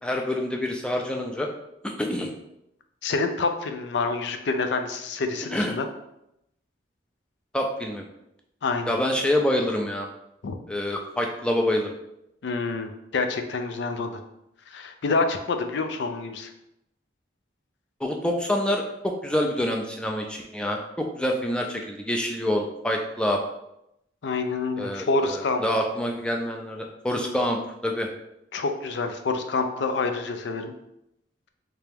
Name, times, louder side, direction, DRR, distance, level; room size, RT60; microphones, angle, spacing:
voice 1, 0.0-1.5 2.0-2.3 5.5-5.7 7.5-8.0 8.9-10.1 10.7-12.0 18.0-23.4 24.8-28.1, left 1 dB, 5° left, 1 dB, 0.4 m, -26 dB
voice 2, 3.0-5.9 8.6-8.9 10.4-10.6 12.4-14.2 14.7-16.5 24.2-25.6 28.5-30.7, left 3 dB, 70° left, 7 dB, 0.4 m, -27 dB
3.3 x 2.9 x 3.4 m, 0.83 s
head